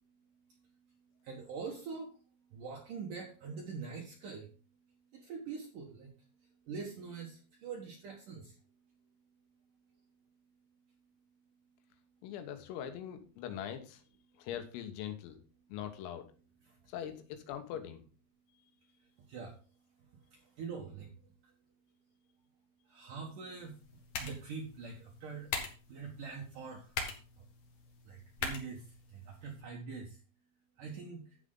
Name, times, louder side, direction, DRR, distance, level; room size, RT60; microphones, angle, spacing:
voice 1, 0.5-4.5 5.1-8.7 16.6-16.9 19.0-19.6 20.0-21.5 22.8-23.8 24.2-25.5 25.9-27.5 28.0-30.2 30.8-31.4, right 5 dB, 85° right, 0 dB, 1.8 m, -45 dB
voice 2, 12.2-14.0 14.4-15.4 15.7-16.3 16.9-18.0, left 10 dB, 90° left, 8 dB, 4.0 m, -42 dB
sound 1, 23.6-29.6, left 4 dB, 70° left, 1.6 m, -43 dB
11.0 x 7.6 x 3.8 m, 0.35 s
omnidirectional pair, 5.8 m